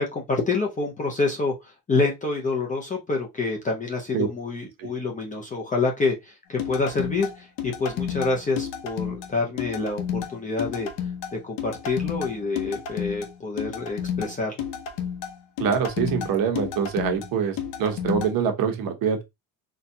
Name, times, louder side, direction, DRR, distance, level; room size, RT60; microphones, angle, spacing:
voice 1, 0.0-10.9 11.3-14.6, left 3 dB, 20° left, 0.5 m, -27 dB
sound 1, 6.6-18.3, left 8 dB, 75° left, 0.8 m, -31 dB
voice 2, 15.6-19.2, right 7 dB, 50° right, 0.9 m, -25 dB
4.1 x 2.2 x 2.6 m
cardioid pair, 170°, 43 cm